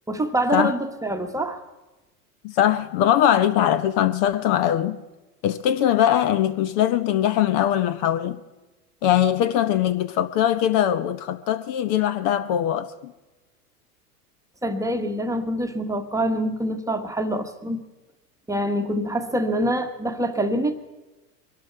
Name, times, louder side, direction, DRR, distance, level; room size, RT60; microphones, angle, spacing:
voice 1, 0.1-1.6 14.6-17.9 18.5-20.7, right 1 dB, 5° right, 1.2 m, -25 dB
voice 2, 2.4-5.0 5.4-8.4 9.0-13.1, left 11 dB, 50° left, 0.9 m, -21 dB
23.0 x 12.0 x 4.6 m
hypercardioid pair, 100°, 46 cm